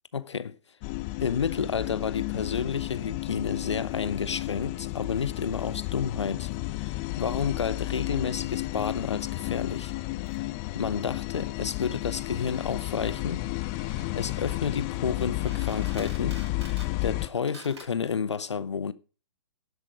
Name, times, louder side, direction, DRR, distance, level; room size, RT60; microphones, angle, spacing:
voice 1, 0.1-0.6 1.2-9.9 10.3-10.5 10.7-13.5 14.1-16.4 16.7-18.9, left 6 dB, 75° left, 0.7 m, -31 dB
sound 1, 0.8-17.3, left 19 dB, 30° left, 0.5 m, -32 dB
sound 2, 10.0-10.4 11.1-11.2 11.4-11.5 11.7-11.8 11.9-16.9 17.4-17.8, right 3 dB, 65° right, 5.8 m, -51 dB
11.5 x 8.2 x 5.4 m
figure-of-eight pair, 115°, 15 cm